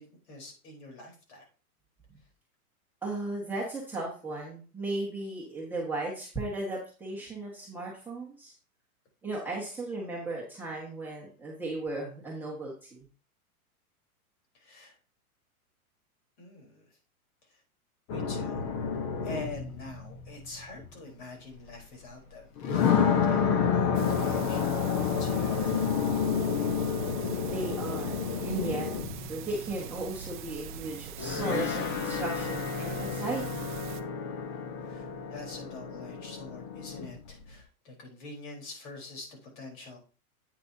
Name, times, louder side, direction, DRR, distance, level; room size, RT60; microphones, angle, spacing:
voice 1, 0.0-1.5 14.5-15.0 16.4-16.9 17.5-17.6 18.1-18.7 19.2-22.5 22.8-25.9 34.8-40.0, left 2 dB, 50° left, 1 dB, 4.1 m, -45 dB
voice 2, 3.0-8.5 9.2-13.0 27.5-28.9 29.3-33.7, right 2 dB, 5° right, -6 dB, 1.5 m, -36 dB
sound 1, 18.1-20.9 21.8-21.9 22.6-30.7 31.2-37.5, left 6 dB, 30° left, 1.0 m, -30 dB
sound 2, 23.9-34.0, right 9 dB, 35° right, 0.5 m, -43 dB
8.9 x 8.1 x 2.8 m, 0.36 s
hypercardioid pair, 155°, 45 cm